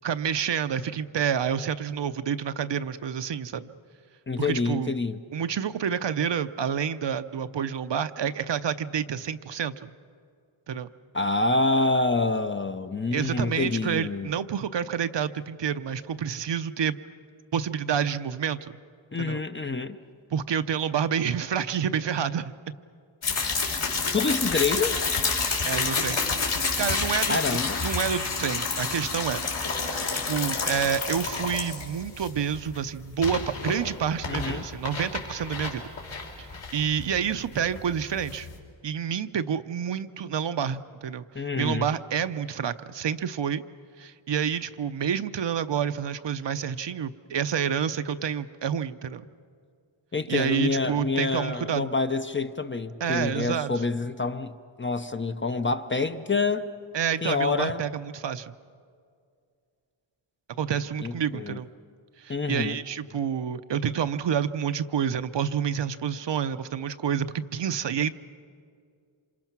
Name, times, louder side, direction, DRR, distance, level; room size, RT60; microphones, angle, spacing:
voice 1, 0.0-3.7 4.4-4.9 5.3-9.9 10.7-10.9 13.1-17.0 17.5-18.7 19.2-19.4 20.3-22.5 23.3-23.4 25.6-26.2 26.8-27.4 27.8-29.4 29.9-30.0 30.2-35.9 36.4-38.5 38.8-43.6 44.0-49.2 50.3-51.9 53.0-53.7 56.9-58.5 60.6-61.7 62.2-68.1, right 8 dB, 60° right, 0.7 m, -28 dB
voice 2, 4.3-5.2 11.1-14.3 19.1-20.0 24.1-24.9 27.3-27.9 34.3-34.6 41.3-41.9 50.1-56.7 57.2-57.8 61.0-61.6 62.3-62.8, left 3 dB, 25° left, 0.6 m, -27 dB
sound 1, 23.2-38.6, left 4 dB, 70° left, 3.8 m, -29 dB
27.0 x 27.0 x 6.0 m
wide cardioid pair, 170°, 50 cm